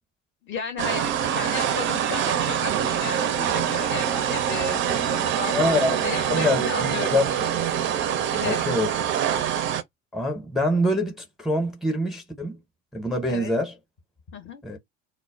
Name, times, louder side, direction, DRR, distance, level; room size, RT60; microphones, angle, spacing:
voice 1, 0.4-7.2 8.3-8.6 13.3-13.5 14.3-14.6, left 6 dB, 30° left, 0.7 m, -34 dB
sound 1, 0.8-9.8, right 9 dB, 35° right, 0.4 m, -25 dB
voice 2, 5.5-5.9 6.3-7.2 8.4-8.9 10.1-12.6 12.9-13.7 14.6-14.8, left 1 dB, ahead, 0.7 m, -25 dB
2.1 x 2.0 x 3.4 m
hypercardioid pair, 80°, 38 cm